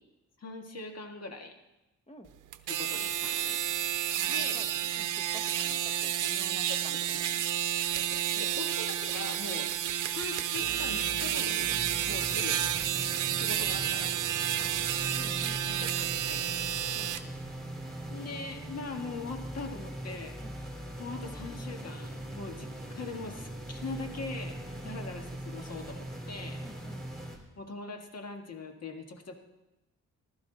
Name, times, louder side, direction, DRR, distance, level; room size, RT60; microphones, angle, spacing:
voice 1, 0.4-1.6 2.7-3.7 4.3-4.6 6.7-6.8 7.9-9.7 10.1-11.8 12.1-12.6 13.3-14.2 15.8-16.7 18.1-26.7 27.6-29.3, left 3 dB, 55° left, 4 dB, 1.7 m, -41 dB
sound 1, 2.5-17.2, right 11 dB, 85° right, 0.7 m, -31 dB
voice 2, 4.1-7.4 8.3-8.7 12.1-12.3 14.6-15.9 16.9-17.2 20.4-20.6 24.8-25.0 26.6-27.1, left 1 dB, 20° left, 8 dB, 0.9 m, -50 dB
sound 2, 10.6-27.4, right 1 dB, ahead, 3.3 m, -41 dB
15.0 x 12.0 x 4.0 m, 0.98 s
cardioid pair, 85°, 30 cm